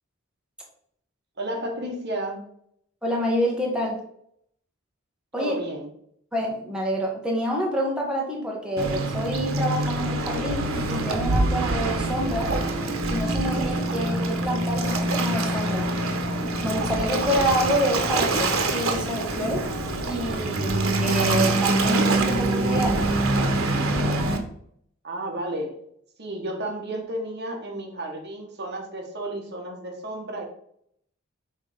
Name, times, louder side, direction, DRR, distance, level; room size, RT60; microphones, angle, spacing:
voice 1, 1.4-2.5 5.4-5.9 25.0-25.8 26.2-30.4, right 1 dB, 55° right, 0 dB, 1.7 m, -32 dB
voice 2, 3.0-4.0 5.3-5.6 6.3-12.5 13.1-15.9 16.6-19.6 20.1-23.1, equal, 5° right, -2 dB, 1.4 m, -27 dB
Waves surf, 8.8-24.4, right 2 dB, 85° right, 1.2 m, -25 dB
6.2 x 4.1 x 5.1 m, 0.68 s
head